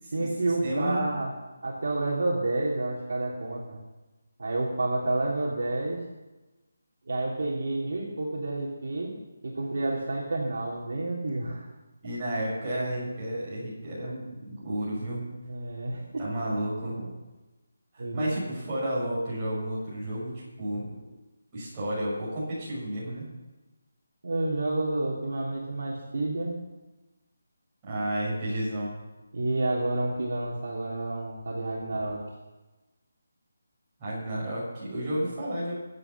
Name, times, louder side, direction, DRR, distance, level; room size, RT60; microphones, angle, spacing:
voice 1, 0.1-1.3 1.6-3.8 4.4-6.0 7.1-9.1 9.4-11.7 15.5-16.3 18.0-18.3 24.2-26.5 29.3-32.2, right 2 dB, 55° right, -3 dB, 3.1 m, -29 dB
voice 2, 0.6-1.2 12.0-15.3 16.2-17.1 17.9-20.9 21.5-23.3 27.8-28.9 34.0-35.7, right 1 dB, 15° right, -9 dB, 6.5 m, -31 dB
23.5 x 8.1 x 6.0 m, 1.1 s
hypercardioid pair, 180°, 0 cm